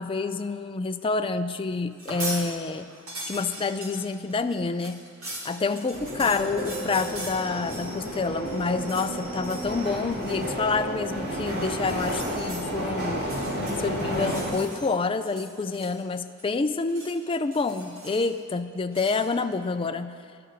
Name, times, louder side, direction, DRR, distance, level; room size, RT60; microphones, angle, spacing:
voice 1, 0.0-2.9 3.3-5.0 5.4-13.2 13.8-20.1, left 4 dB, 25° left, 9 dB, 0.4 m, -28 dB
sound 1, 1.9-2.4 2.8-8.2 8.4-9.1 9.4-9.7 10.1-10.4 11.7-12.6 13.2-14.9 15.2-16.1 16.4-17.2 17.5-18.4 18.9-19.2, right 1 dB, 75° right, 2.4 m, -40 dB
sound 2, 5.9-14.5, equal, 50° right, 2.7 m, -31 dB
11.0 x 6.8 x 8.7 m, 2.3 s
head